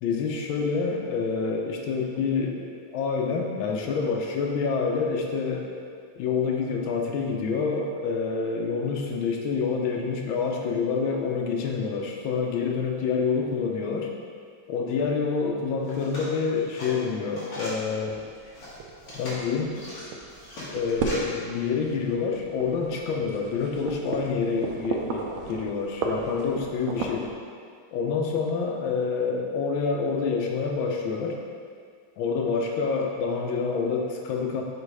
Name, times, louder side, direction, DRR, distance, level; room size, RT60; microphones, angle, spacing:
voice 1, 0.0-5.7 6.2-14.1 14.7-18.2 19.1-19.8 20.7-27.3 27.9-31.4 32.2-34.6, left 5 dB, 90° left, 1 dB, 1.5 m, -27 dB
sound 1, 15.8-17.9 18.3-21.2, left 1 dB, 65° left, 2.2 m, -40 dB
sound 2, 18.1-27.3, right 4 dB, 75° right, 1.3 m, -35 dB
5.4 x 4.1 x 4.7 m, 2.1 s
omnidirectional pair, 2.1 m